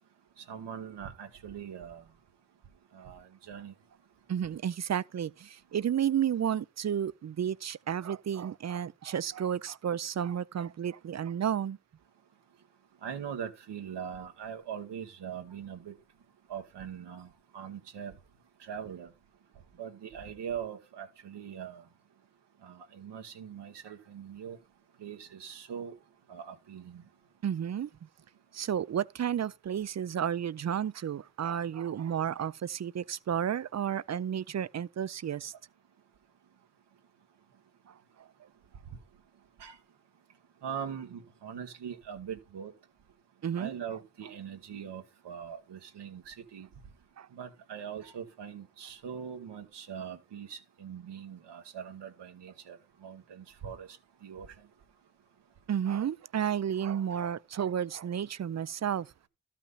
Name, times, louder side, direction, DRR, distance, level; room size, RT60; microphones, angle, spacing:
voice 1, 0.4-2.0 2.9-3.7 13.0-15.9 16.5-17.3 17.5-18.1 18.6-19.1 19.8-21.8 22.6-24.6 25.0-25.9 26.3-27.0 39.6-39.8 40.6-42.7 43.5-46.7 47.3-53.9 54.2-54.5, right 8 dB, 90° right, 1.3 m, -41 dB
voice 2, 4.3-11.8 27.4-27.9 28.5-35.5 37.9-38.0 43.4-43.7 47.2-47.3 55.7-59.1, right 9 dB, 40° right, 0.5 m, -32 dB
12.5 x 5.9 x 4.1 m
cardioid pair, 45°, 40 cm